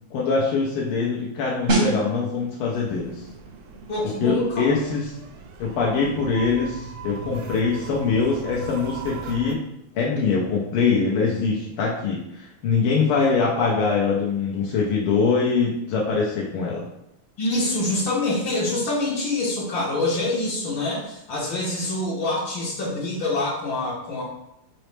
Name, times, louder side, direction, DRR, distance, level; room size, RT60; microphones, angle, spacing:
voice 1, 0.1-3.1 4.2-5.1 5.6-9.6 10.0-16.8, left 5 dB, 85° left, -3 dB, 1.6 m, -23 dB
sound 1, 1.7-12.2 12.5-12.7, right 2 dB, 45° right, 0.7 m, -33 dB
sound 2, 2.8-9.5, right 5 dB, 75° right, 1.3 m, -39 dB
voice 2, 3.9-4.7 17.4-24.2, left 2 dB, 65° left, -5 dB, 1.7 m, -25 dB
5.3 x 3.0 x 3.2 m, 0.80 s
omnidirectional pair, 2.3 m